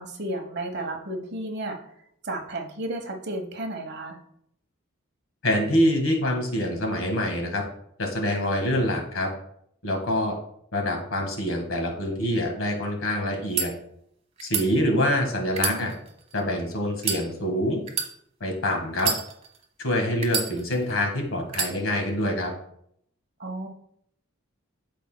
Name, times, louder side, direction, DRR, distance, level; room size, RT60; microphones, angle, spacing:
voice 1, 0.0-1.8 2.2-4.2 15.6-15.9 23.4-23.7, right 1 dB, 50° right, 3 dB, 1.1 m, -33 dB
voice 2, 5.4-7.6 8.0-9.3 9.8-10.3 10.7-13.7 14.4-15.9 16.3-17.8 18.4-19.1 19.8-22.5, left 1 dB, 70° left, 2 dB, 1.7 m, -25 dB
sound 1, 13.3-13.7 14.4-14.7 15.5-16.4 17.0-17.2 17.9-18.1 18.9-19.6 20.2-20.9 21.5-21.7, right 6 dB, 30° right, 1.0 m, -28 dB
12.5 x 4.2 x 2.2 m, 0.70 s
head